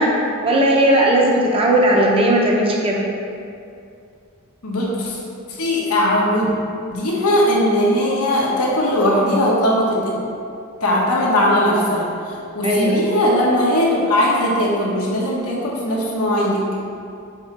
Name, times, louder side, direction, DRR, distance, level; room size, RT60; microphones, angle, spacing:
voice 1, 0.0-3.0 12.6-13.0, right 1 dB, 25° right, -1 dB, 0.7 m, -17 dB
voice 2, 4.6-5.2 5.6-6.5 6.9-10.2 10.8-16.6, left 1 dB, 90° left, -4 dB, 1.4 m, -19 dB
6.6 x 3.8 x 4.5 m, 2.5 s
head